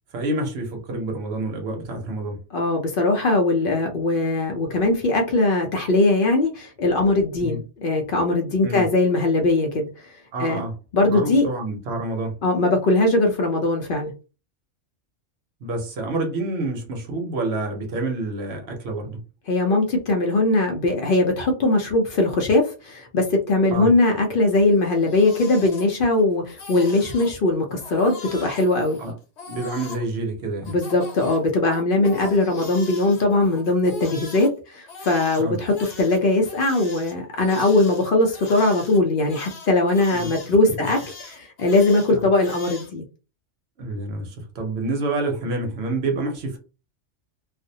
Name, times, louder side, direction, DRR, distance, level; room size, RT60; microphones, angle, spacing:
voice 1, 0.1-2.4 7.4-7.6 8.6-8.8 10.3-10.7 11.0-12.4 15.6-19.2 23.7-23.9 29.0-29.1 29.5-30.7 35.4-35.6 40.1-40.3 40.7-40.9 42.1-42.2 43.8-46.6, right 2 dB, 65° right, 0.9 m, -28 dB
voice 2, 2.5-9.9 10.4-10.6 10.9-11.5 12.4-14.1 19.5-29.0 30.7-41.0 41.3-43.0, left 2 dB, 55° left, 0.7 m, -20 dB
Crying sobbing, 24.8-26.2 26.5-27.3 27.8-30.0 30.6-34.5 34.9-42.9, left 4 dB, 75° left, 1.1 m, -40 dB
2.5 x 2.0 x 2.6 m
omnidirectional pair, 1.2 m